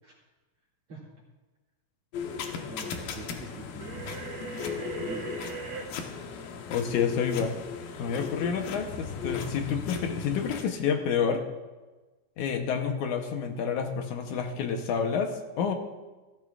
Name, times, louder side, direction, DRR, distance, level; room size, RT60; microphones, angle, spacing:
sound 1, 2.1-10.7, left 6 dB, 90° left, 2.9 m, -36 dB
voice 1, 2.6-4.4 4.8-5.4, right 3 dB, 45° right, -4 dB, 3.1 m, -44 dB
sound 2, 3.8-5.9, right 5 dB, 80° right, 3.4 m, -39 dB
voice 2, 6.7-7.5 8.0-11.5 12.4-15.7, left 6 dB, 70° left, 4 dB, 2.3 m, -29 dB
16.0 x 15.5 x 2.5 m, 1.2 s
omnidirectional pair, 3.9 m